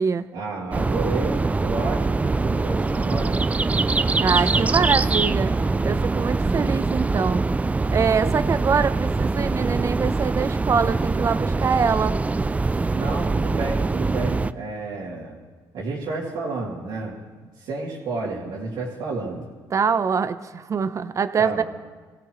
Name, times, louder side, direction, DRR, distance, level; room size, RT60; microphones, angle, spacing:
voice 1, 0.3-3.5 12.9-15.3 15.7-17.1 17.6-19.5 21.4-21.6, right 3 dB, 80° right, -8 dB, 3.0 m, -31 dB
sound 1, 0.7-14.5, right 3 dB, 20° right, 0.4 m, -23 dB
voice 2, 4.2-5.5 5.8-7.4 7.9-12.2 19.7-21.6, right 6 dB, 40° right, 12 dB, 0.8 m, -24 dB
sound 2, 4.3-11.0 11.4-11.5, left 2 dB, 45° left, 3.5 m, -48 dB
24.0 x 16.0 x 3.2 m, 1.4 s
supercardioid pair, 80°, 8 cm